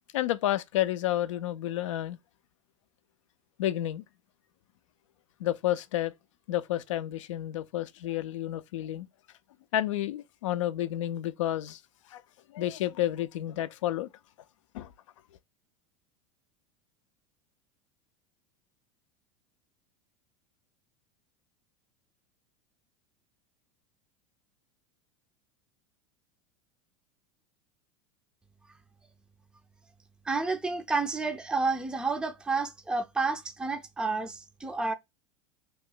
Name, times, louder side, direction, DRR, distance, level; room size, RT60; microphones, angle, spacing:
voice 1, 0.1-2.2 3.6-4.0 5.4-6.1 6.5-9.1 9.7-11.8 12.1-12.2 12.5-14.1 14.7-14.9, left 13 dB, 75° left, 0.4 m, -30 dB
voice 2, 30.3-34.9, right 3 dB, 5° right, 0.5 m, -30 dB
2.9 x 2.1 x 3.8 m
hypercardioid pair, 90°, 16 cm